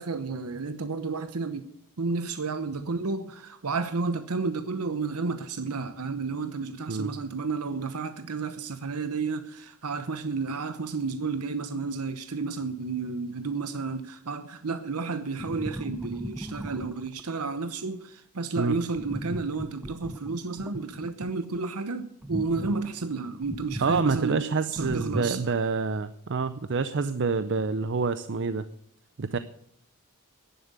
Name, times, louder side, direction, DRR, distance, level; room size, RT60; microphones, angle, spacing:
voice 1, 0.0-1.7 2.0-24.5 24.7-25.4, right 4 dB, 85° right, 0.9 m, -31 dB
sound 1, 15.4-17.2 18.9-21.6 22.2-24.2 24.8-25.2, equal, 5° right, 0.5 m, -37 dB
voice 2, 23.8-28.7 29.2-29.4, right 4 dB, 55° right, 0.6 m, -27 dB
10.5 x 10.5 x 8.1 m
head